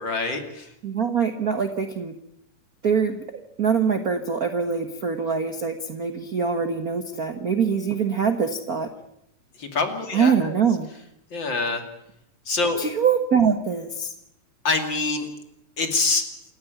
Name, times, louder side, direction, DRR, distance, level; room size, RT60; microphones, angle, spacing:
voice 1, 0.0-0.7 9.6-10.5 11.3-11.8 12.5-12.8 14.6-15.3 15.8-16.2, left 3 dB, 40° left, 5 dB, 2.9 m, -25 dB
voice 2, 0.8-2.1 2.8-8.9 10.1-10.9 12.8-14.1, right 6 dB, 55° right, 7 dB, 1.0 m, -24 dB
28.5 x 14.0 x 9.3 m, 0.79 s
omnidirectional pair, 3.7 m